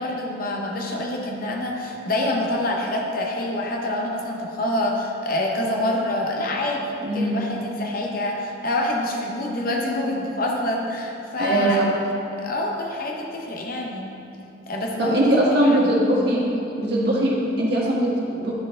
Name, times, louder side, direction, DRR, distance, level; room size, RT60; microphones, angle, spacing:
voice 1, 0.0-11.8 12.4-14.1 14.7-16.0, left 1 dB, 45° left, 0 dB, 0.8 m, -26 dB
voice 2, 7.0-7.4 11.4-11.7 15.0-16.4 16.8-18.5, right 1 dB, 55° right, -5 dB, 1.5 m, -21 dB
11.0 x 4.6 x 3.7 m, 2.9 s
head